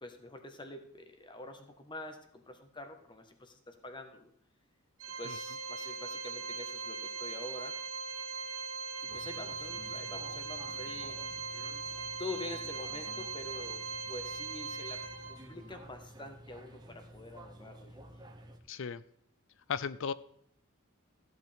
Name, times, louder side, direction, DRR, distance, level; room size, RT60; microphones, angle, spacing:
voice 1, 0.0-4.3 5.2-7.8 9.0-11.2 12.2-18.3, left 2 dB, 20° left, 6 dB, 1.3 m, -46 dB
Organ, 5.0-15.7, right 5 dB, 65° right, 3.1 m, -40 dB
sound 1, 9.1-18.6, right 1 dB, 20° right, 1.2 m, -52 dB
voice 2, 18.7-19.0 19.7-20.1, left 6 dB, 60° left, 17 dB, 0.5 m, -35 dB
14.5 x 8.1 x 3.5 m, 0.67 s
head